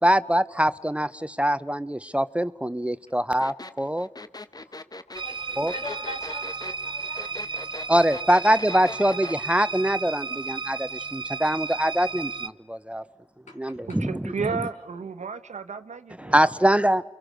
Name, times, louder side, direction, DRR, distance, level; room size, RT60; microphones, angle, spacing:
voice 1, 0.0-4.1 5.6-5.7 7.9-13.0 13.6-14.3 16.2-17.0, right 1 dB, 10° right, 0.8 m, -23 dB
sound 1, 3.4-9.4, left 2 dB, 35° left, 1.2 m, -40 dB
voice 2, 5.2-8.2 9.0-9.2 13.5-14.0 14.4-14.6, left 3 dB, 85° left, 5.9 m, -43 dB
sound 2, 5.2-12.5, right 4 dB, 40° right, 0.9 m, -34 dB
voice 3, 14.0-16.5, right 5 dB, 80° right, 1.2 m, -33 dB
29.5 x 24.0 x 6.5 m
cardioid pair, 40°, 12 cm